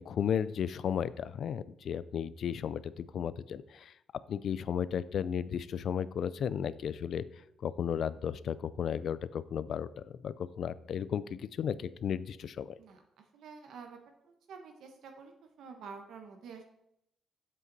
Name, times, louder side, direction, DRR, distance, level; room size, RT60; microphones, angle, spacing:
voice 1, 0.0-3.9 4.3-7.2 7.6-12.7, left 8 dB, 50° left, 17 dB, 0.4 m, -34 dB
voice 2, 13.3-14.0 14.2-16.6, right 5 dB, 70° right, 4 dB, 1.1 m, -48 dB
8.2 x 7.5 x 4.0 m, 0.78 s
cardioid pair, 165°, 0 cm